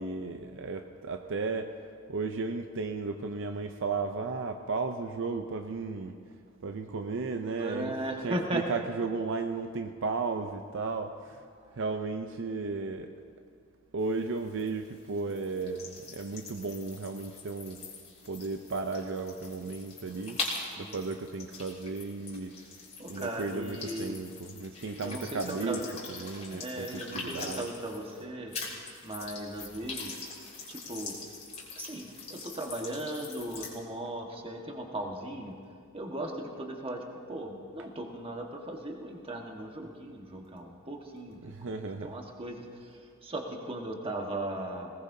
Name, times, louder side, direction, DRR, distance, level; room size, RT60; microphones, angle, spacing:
voice 1, 0.0-1.7 2.1-6.2 6.6-7.9 8.2-11.4 11.7-13.1 13.9-17.8 18.2-20.4 20.7-22.6 23.1-25.8 26.1-27.7 41.4-42.1, right 4 dB, 60° right, 6 dB, 0.6 m, -34 dB
voice 2, 7.5-8.6 11.6-11.8 20.8-21.0 23.0-24.2 25.0-26.0 26.3-28.5 29.0-30.2 30.7-31.2 31.8-35.5 35.9-41.4 41.7-44.9, right 1 dB, 25° right, 1 dB, 1.4 m, -37 dB
sound 1, 14.0-28.2 28.5-33.7, left 3 dB, 30° left, 3.1 m, -43 dB
20.5 x 18.5 x 2.7 m, 2.2 s
head